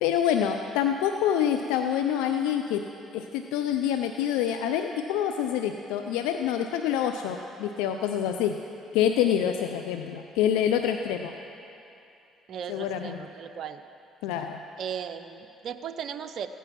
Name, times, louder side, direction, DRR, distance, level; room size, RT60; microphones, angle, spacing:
voice 1, 0.0-2.8 3.1-8.6 8.9-11.3 12.7-13.2 14.2-14.6, left 9 dB, 85° left, 6 dB, 0.5 m, -26 dB
voice 2, 12.5-13.8 14.8-16.5, right 7 dB, 60° right, 9 dB, 0.7 m, -36 dB
15.5 x 9.2 x 5.8 m, 2.8 s
supercardioid pair, 70°, 0 cm